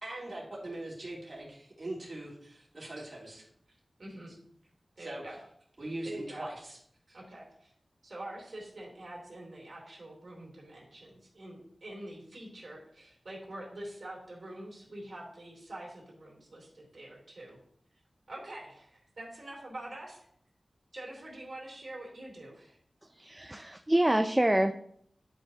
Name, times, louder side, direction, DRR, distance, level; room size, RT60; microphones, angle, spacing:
voice 1, 0.0-3.4 5.0-5.2 5.8-6.8 7.1-7.2, right 1 dB, 45° right, -5 dB, 2.9 m, -41 dB
voice 2, 4.0-4.3 5.0-5.4 6.0-6.5 7.1-7.7 8.0-17.6 18.3-20.2 20.9-22.8, right 1 dB, 60° right, -4 dB, 3.2 m, -45 dB
voice 3, 23.2-24.7, right 1 dB, 15° right, 7 dB, 0.4 m, -26 dB
10.5 x 5.5 x 2.8 m, 0.67 s
wide cardioid pair, 100°, 0 cm